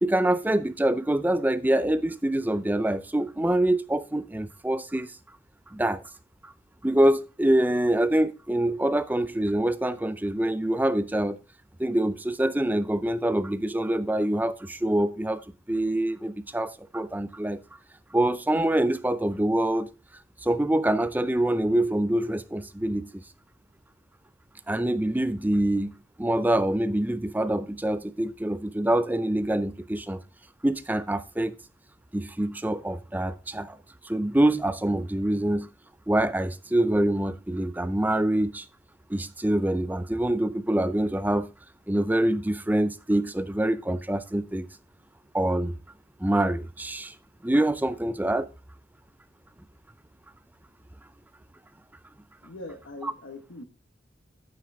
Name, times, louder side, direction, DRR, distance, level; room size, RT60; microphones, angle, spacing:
voice 1, 0.0-5.1 5.7-6.0 6.4-6.5 6.8-11.4 11.8-15.4 15.7-17.6 18.1-19.9 20.4-23.2 24.7-25.9 26.2-30.2 30.6-31.5 32.1-33.8 34.0-35.7 36.1-38.7 39.1-41.5 41.9-44.7 45.3-45.8 46.2-47.1 47.4-48.5 53.0-53.1, right 1 dB, 10° right, 0.5 m, -25 dB
voice 2, 52.4-53.6, left 2 dB, 85° left, 1.5 m, -41 dB
9.3 x 7.5 x 3.5 m
head